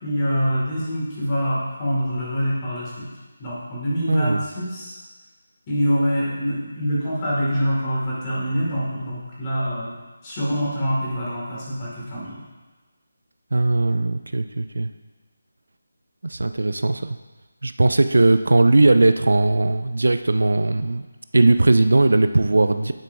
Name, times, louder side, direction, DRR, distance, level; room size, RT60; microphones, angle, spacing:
voice 1, 0.0-3.0 3.4-5.0 5.7-10.0 10.2-12.4, equal, 20° left, -7 dB, 2.0 m, -25 dB
voice 2, 4.1-4.4 13.5-14.9 16.2-17.2 17.6-21.1 21.3-22.9, right 2 dB, 80° right, 10 dB, 0.4 m, -18 dB
10.5 x 4.7 x 2.6 m, 1.2 s
figure-of-eight pair, 170°, 0 cm